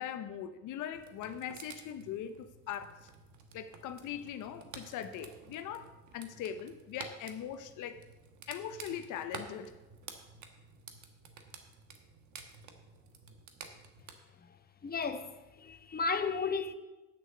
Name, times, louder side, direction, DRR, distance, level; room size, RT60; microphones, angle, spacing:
voice 1, 0.0-3.1 3.5-8.0 8.5-9.7, left 9 dB, 90° left, 0.7 m, -41 dB
sound 1, 0.9-14.1, right 5 dB, 70° right, 1.3 m, -51 dB
voice 2, 14.8-16.7, left 4 dB, 30° left, 0.9 m, -34 dB
8.5 x 6.5 x 7.5 m
cardioid pair, 90°, 30 cm